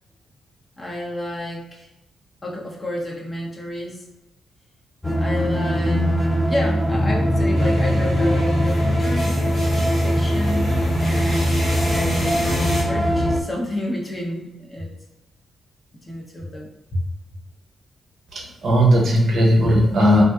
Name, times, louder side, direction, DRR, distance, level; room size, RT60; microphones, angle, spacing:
voice 1, 0.8-1.9 2.4-4.0 5.2-6.1 6.5-9.4 10.0-14.9 16.1-17.0, left 1 dB, 30° left, -2 dB, 0.8 m, -30 dB
sound 1, 5.0-13.4, equal, 5° left, 0.3 m, -20 dB
sound 2, 7.5-12.8, left 1 dB, 75° left, 1.5 m, -32 dB
voice 2, 18.3-20.2, equal, 70° right, -1 dB, 0.6 m, -17 dB
2.5 x 2.3 x 2.2 m, 0.96 s
supercardioid pair, 50°, 0 cm